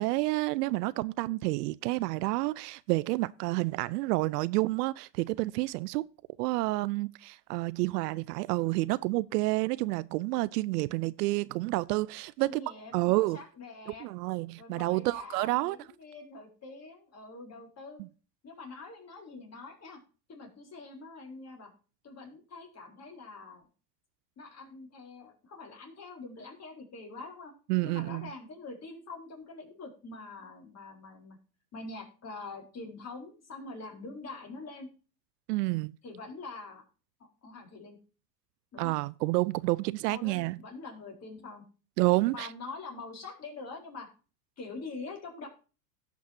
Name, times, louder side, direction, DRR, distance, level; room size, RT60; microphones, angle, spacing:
voice 1, 0.0-6.1 6.4-12.6 12.9-13.4 14.0-15.8 18.0-18.1 27.7-28.3 35.5-36.0 38.8-40.6 42.0-42.5, right 21 dB, 70° right, 0.6 m, -29 dB
voice 2, 12.4-14.1 14.6-18.0 18.4-20.0 20.3-21.7 22.0-23.6 24.4-27.5 27.8-31.4 31.7-34.9 36.0-36.8 37.2-38.0 38.7-39.0 40.1-41.6 42.3-44.1 44.6-45.5, left 3 dB, 30° left, 4.2 m, -45 dB
17.5 x 6.0 x 2.7 m
hypercardioid pair, 105°, 50 cm